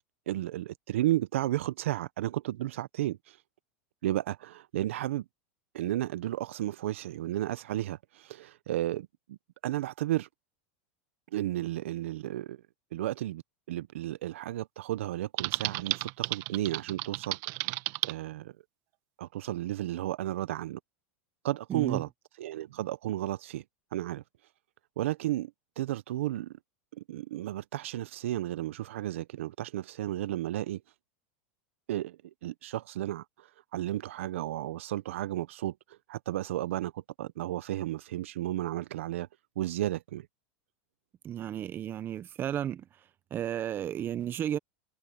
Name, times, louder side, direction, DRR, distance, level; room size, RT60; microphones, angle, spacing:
voice 1, 0.0-3.4 4.0-5.2 5.7-9.4 9.6-10.3 11.3-12.6 12.9-13.4 13.7-17.4 18.0-18.5 19.2-20.8 21.4-22.1 22.4-23.6 23.9-24.2 25.0-25.5 25.8-26.6 27.0-30.8 31.9-35.8 36.1-39.3 39.6-40.3, right 14 dB, 80° right, 0.8 m, -33 dB
Typing, 15.4-18.1, right 22 dB, 55° right, 1.2 m, -33 dB
voice 2, 21.7-22.0 41.2-42.9 43.3-44.6, right 10 dB, 30° right, 1.2 m, -33 dB
hypercardioid pair, 115°, 7 cm